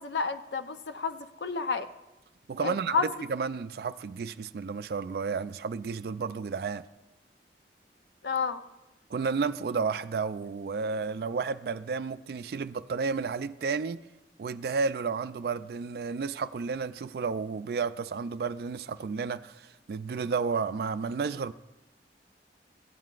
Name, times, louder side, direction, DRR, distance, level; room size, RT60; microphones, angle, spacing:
voice 1, 0.0-1.9 2.6-3.1 8.2-8.6, left 5 dB, 75° left, 0.6 m, -30 dB
voice 2, 2.5-6.8 9.1-14.0 14.4-21.5, right 5 dB, 60° right, 0.3 m, -32 dB
16.0 x 9.2 x 2.4 m
head